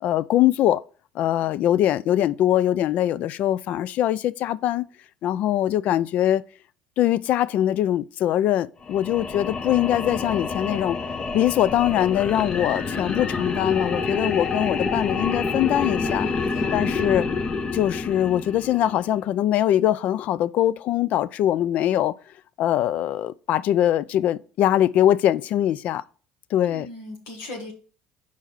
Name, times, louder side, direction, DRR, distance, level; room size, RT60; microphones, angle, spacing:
voice 1, 0.0-0.8 1.2-4.9 5.2-6.4 7.0-11.0 11.3-16.3 16.7-17.3 17.7-22.1 22.6-26.0 26.5-26.9, left 12 dB, 60° left, 0.3 m, -22 dB
sound 1, 8.8-19.2, left 4 dB, 35° left, 0.8 m, -28 dB
voice 2, 16.0-17.0 26.6-27.7, left 2 dB, 80° left, 1.5 m, -38 dB
4.6 x 4.5 x 5.5 m
hypercardioid pair, 70°, 3 cm